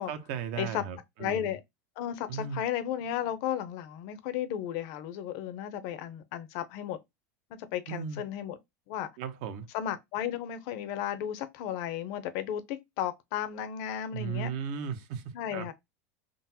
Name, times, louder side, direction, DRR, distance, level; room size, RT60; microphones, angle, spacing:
voice 1, 0.1-1.5 2.3-2.6 7.9-8.2 9.2-9.7 14.1-15.2 15.5-15.7, right 7 dB, 55° right, 0.7 m, -36 dB
voice 2, 1.2-1.6 2.0-7.0 7.7-8.6 8.9-9.1 9.7-14.5 15.3-15.7, left 10 dB, 55° left, 0.6 m, -34 dB
3.8 x 2.0 x 2.7 m
supercardioid pair, 145°, 8 cm